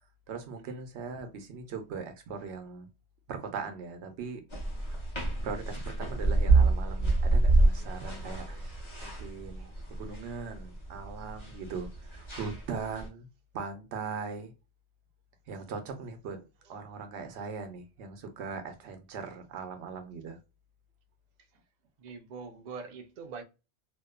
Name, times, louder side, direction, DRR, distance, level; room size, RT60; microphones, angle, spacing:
voice 1, 0.3-2.9 3.3-4.4 4.9-5.0 5.4-8.7 9.0-13.3 13.5-14.5 15.5-16.4 16.7-20.4, right 5 dB, 85° right, 0.9 m, -40 dB
sound 1, 4.5-13.1, right 3 dB, 30° left, 0.8 m, -28 dB
voice 2, 22.0-23.4, right 5 dB, 55° right, 0.5 m, -43 dB
2.6 x 2.2 x 2.2 m
omnidirectional pair, 1.1 m